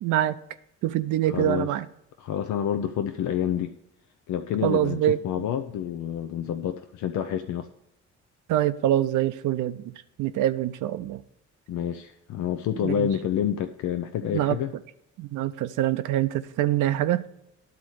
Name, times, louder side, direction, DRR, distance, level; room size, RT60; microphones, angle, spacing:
voice 1, 0.0-0.4 0.8-1.9 4.6-5.2 8.5-9.8 10.2-11.2 12.8-13.1 14.3-14.6 15.2-17.2, right 12 dB, 80° right, 0.5 m, -24 dB
voice 2, 1.3-1.7 2.2-3.7 4.3-7.7 11.7-14.7, left 9 dB, 75° left, 0.6 m, -28 dB
10.5 x 4.3 x 6.3 m
cardioid pair, 90°, 30 cm